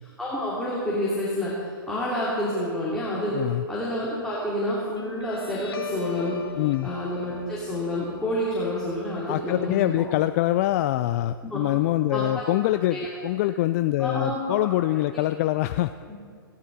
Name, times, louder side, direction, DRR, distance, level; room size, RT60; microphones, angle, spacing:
voice 1, 0.2-1.6 1.9-3.4 3.7-6.4 6.8-10.0 11.4-11.6 12.1-12.4 12.9-13.1 14.0-14.7 16.1-16.2, left 1 dB, 5° left, -8 dB, 3.0 m, -28 dB
voice 2, 3.3-3.6 6.6-6.9 9.3-15.9, left 15 dB, 40° left, 11 dB, 0.3 m, -24 dB
Guitar, 5.0-12.0, left 6 dB, 90° left, 1.5 m, -41 dB
16.0 x 15.5 x 4.1 m, 2.2 s
hypercardioid pair, 125°, 12 cm